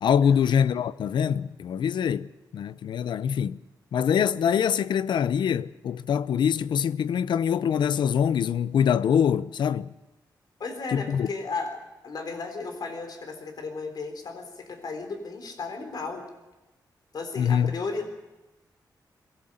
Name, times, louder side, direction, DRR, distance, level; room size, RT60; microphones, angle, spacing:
voice 1, 0.0-2.3 2.5-3.6 3.9-9.9 10.9-11.3 17.4-17.7, left 8 dB, 85° left, 0.6 m, -24 dB
voice 2, 10.6-16.3 17.1-18.1, left 4 dB, 65° left, 3.9 m, -35 dB
22.5 x 17.5 x 7.8 m
wide cardioid pair, 100°, 8 cm